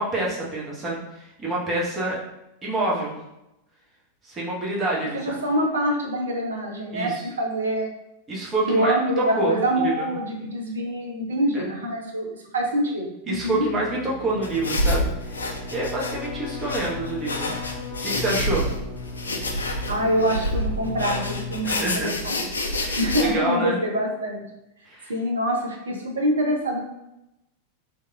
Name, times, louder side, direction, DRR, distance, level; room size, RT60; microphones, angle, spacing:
voice 1, 0.0-2.2 2.6-3.2 4.2-5.3 6.9-7.2 8.3-10.1 11.5-11.7 13.3-15.4 15.7-17.5 18.0-18.7 21.6-22.1 22.7-23.8 24.9-25.1, right 2 dB, 20° right, -5 dB, 1.1 m, -27 dB
voice 2, 5.1-7.9 8.7-13.7 19.9-22.5 23.0-24.5 25.1-26.9, equal, 70° right, 0 dB, 0.6 m, -25 dB
Keyboard (musical), 13.3-22.0, left 3 dB, 45° left, 0.8 m, -37 dB
sound 1, 14.4-23.2, left 1 dB, 75° left, 0.4 m, -28 dB
3.2 x 2.8 x 2.3 m, 0.88 s
figure-of-eight pair, 90°, 0 cm